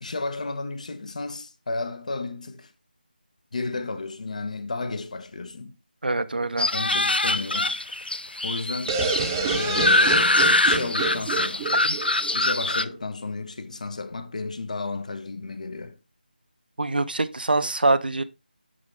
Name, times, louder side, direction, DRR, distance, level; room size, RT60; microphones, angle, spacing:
voice 1, 0.0-2.7 3.5-5.7 6.7-8.0 8.4-9.0 9.5-11.7 12.3-16.0, left 3 dB, 45° left, 1.2 m, -33 dB
voice 2, 6.0-6.7 11.8-12.0 16.8-18.2, right 2 dB, 70° right, 0.8 m, -24 dB
sound 1, 6.6-12.8, left 2 dB, 80° left, 0.6 m, -23 dB
sound 2, 8.9-12.7, right 5 dB, 15° right, 0.9 m, -29 dB
11.5 x 4.2 x 3.5 m
figure-of-eight pair, 165°, 5 cm